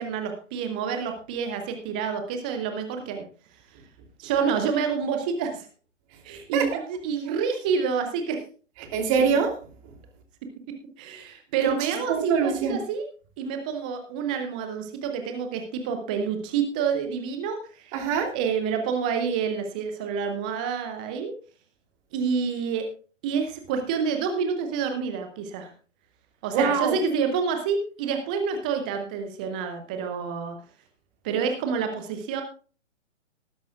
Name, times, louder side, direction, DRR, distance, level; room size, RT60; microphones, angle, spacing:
voice 1, 0.0-3.2 4.2-5.7 6.2-8.4 11.0-13.1 13.4-17.9 18.3-21.3 22.1-22.9 23.2-25.7 26.4-30.6 31.2-32.4, right 6 dB, 5° right, 6 dB, 0.5 m, -28 dB
voice 2, 8.9-9.6 11.6-12.8 17.9-18.3 26.5-26.9, right 6 dB, 25° right, 3 dB, 3.1 m, -24 dB
18.5 x 10.5 x 2.4 m, 0.38 s
figure-of-eight pair, 130°, 37 cm